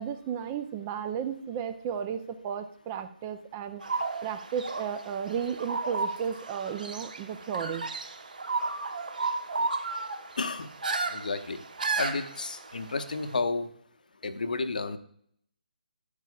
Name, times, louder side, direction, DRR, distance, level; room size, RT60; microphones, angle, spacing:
voice 1, 0.0-7.9, right 8 dB, 20° right, 10 dB, 0.5 m, -34 dB
sound 1, 3.8-13.3, right 3 dB, 60° right, 1.0 m, -34 dB
voice 2, 10.4-10.7 11.1-11.6 12.0-13.7 14.2-15.0, left 3 dB, 60° left, 10 dB, 0.8 m, -31 dB
11.0 x 9.6 x 2.4 m, 0.65 s
figure-of-eight pair, 145°, 5 cm